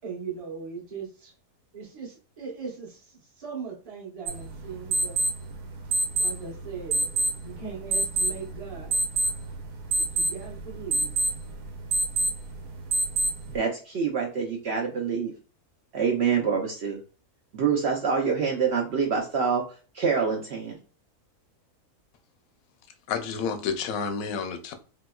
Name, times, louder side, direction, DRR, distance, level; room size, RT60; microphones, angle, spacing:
voice 1, 0.0-1.3 1.7-5.2 6.2-7.0 7.4-9.0 10.0-11.1, right 5 dB, 30° right, -2 dB, 0.9 m, -39 dB
Alarma Reloj Casio, 4.3-13.6, right 2 dB, 80° right, 1.2 m, -28 dB
voice 2, 13.5-15.3 15.9-17.0 17.5-19.7 19.9-20.8, right 6 dB, 65° right, 0 dB, 0.6 m, -26 dB
voice 3, 23.1-24.7, left 6 dB, 75° left, 7 dB, 1.0 m, -30 dB
3.2 x 2.8 x 2.3 m, 0.37 s
omnidirectional pair, 1.6 m